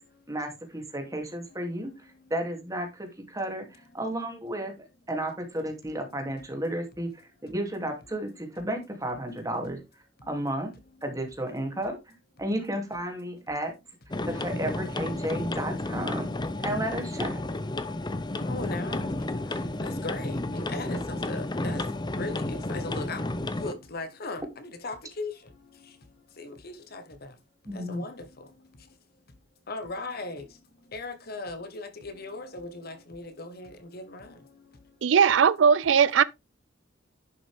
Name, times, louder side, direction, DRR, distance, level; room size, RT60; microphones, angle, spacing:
voice 1, 0.3-1.9 2.3-4.7 5.1-7.1 7.4-9.8 10.3-10.7 11.0-12.1 12.4-13.7 14.3-16.3 16.6-17.4 27.7-28.0, right 1 dB, 20° right, 2.7 m, -32 dB
sound 1, 14.1-23.7, left 2 dB, 25° left, 0.7 m, -32 dB
voice 2, 18.3-19.1 19.8-21.8 22.1-23.3 23.6-25.3 26.4-27.0 27.7-28.2 29.7-30.4 30.9-34.3, left 2 dB, 55° left, 1.3 m, -38 dB
voice 3, 35.0-36.2, right 7 dB, 75° right, 0.4 m, -19 dB
11.0 x 6.1 x 3.6 m
head